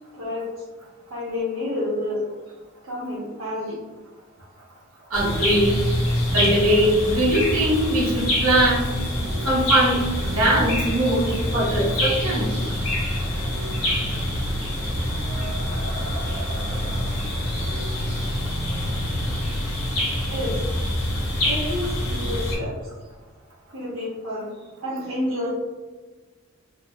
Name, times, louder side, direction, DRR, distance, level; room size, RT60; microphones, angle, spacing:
voice 1, 0.1-0.6 1.1-2.2 2.8-3.8 16.0-16.2 20.3-20.5 21.4-22.7 23.7-25.5, left 1 dB, 65° right, -8 dB, 0.7 m, -29 dB
sound 1, 5.1-22.6, left 1 dB, 80° left, 0.9 m, -25 dB
voice 2, 5.1-5.8 6.3-8.9 9.4-12.5, right 1 dB, 85° right, -5 dB, 1.1 m, -21 dB
3.0 x 2.4 x 2.2 m, 1.3 s
head